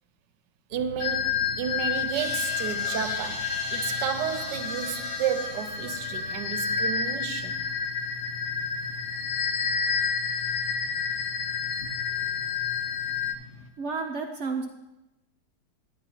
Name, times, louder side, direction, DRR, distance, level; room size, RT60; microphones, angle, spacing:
sound 1, 0.7-13.7, left 3 dB, 60° left, 1.1 m, -45 dB
voice 1, 0.7-7.6, right 9 dB, 75° right, 1.2 m, -32 dB
sound 2, 1.0-13.3, left 6 dB, 80° left, 1.3 m, -30 dB
sound 3, 1.9-7.3, equal, 20° right, 1.2 m, -40 dB
voice 2, 13.8-14.7, right 4 dB, 60° right, 0.7 m, -31 dB
11.0 x 10.5 x 2.8 m
omnidirectional pair, 1.9 m